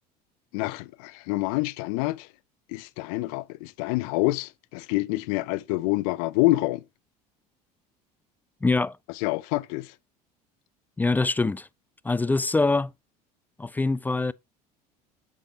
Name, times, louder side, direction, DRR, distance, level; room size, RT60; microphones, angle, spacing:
voice 1, 0.5-2.3 2.7-6.8 9.2-9.9, left 20 dB, 60° left, 0.6 m, -27 dB
voice 2, 8.6-9.0 11.0-11.7 12.0-12.9 13.6-14.3, left 3 dB, 10° left, 0.4 m, -24 dB
8.1 x 7.6 x 2.8 m
figure-of-eight pair, 65°, 20 cm